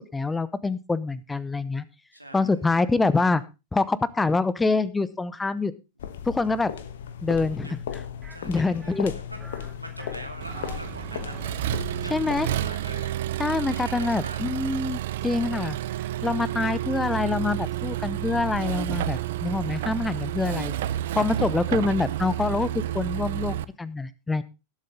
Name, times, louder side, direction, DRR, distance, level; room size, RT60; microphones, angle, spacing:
voice 1, 0.1-1.8 2.3-3.4 3.7-5.7 6.2-6.7 7.2-7.8 8.4-9.1 12.1-12.5 13.4-15.8 16.2-20.7 21.2-24.4, left 3 dB, 10° left, 18 dB, 0.8 m, -25 dB
voice 2, 2.1-2.6 7.6-7.7 8.3-9.0 9.3-9.4 9.8-11.5 11.9-14.4 21.5-21.9, right 1 dB, 90° right, 4 dB, 2.5 m, -43 dB
sound 1, 6.0-12.8, left 8 dB, 60° left, 1.1 m, -37 dB
sound 2, 8.2-8.4 8.8-9.1 9.4-9.7 10.0-10.8 11.1-11.5, right 2 dB, 5° right, 3.4 m, -46 dB
Accelerating revving vroom, 10.4-23.6, right 13 dB, 55° right, 0.6 m, -30 dB
18.5 x 7.9 x 3.6 m, 0.27 s
figure-of-eight pair, 90°, 0 cm